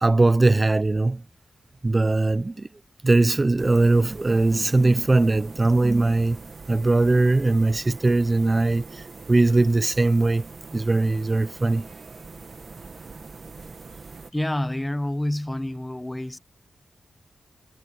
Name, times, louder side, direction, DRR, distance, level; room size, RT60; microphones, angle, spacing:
voice 1, 0.0-1.2 1.8-2.7 3.0-6.4 6.7-11.9, right 2 dB, 25° right, 0.5 m, -20 dB
sound 1, 3.6-14.3, right 4 dB, 45° right, 1.6 m, -43 dB
voice 2, 14.3-16.4, left 1 dB, 10° left, 0.8 m, -28 dB
cardioid pair, 85°, 0 cm